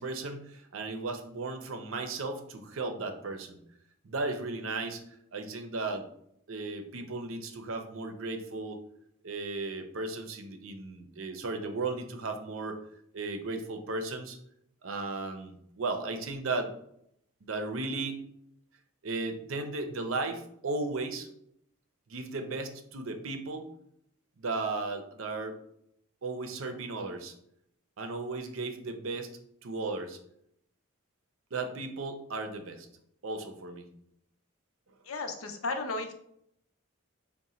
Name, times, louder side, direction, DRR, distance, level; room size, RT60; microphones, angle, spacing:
voice 1, 0.0-3.6 4.0-5.0 5.3-6.1 6.5-8.8 9.2-12.8 13.1-14.4 14.8-16.7 17.4-18.2 19.0-21.3 22.1-23.7 24.4-25.6 26.2-27.3 28.0-29.3 29.6-30.2 31.5-32.9 33.2-33.9, right 3 dB, 75° right, 6 dB, 0.6 m, -35 dB
voice 2, 35.1-36.1, left 3 dB, 80° left, 6 dB, 0.6 m, -34 dB
3.7 x 2.2 x 4.2 m, 0.72 s
head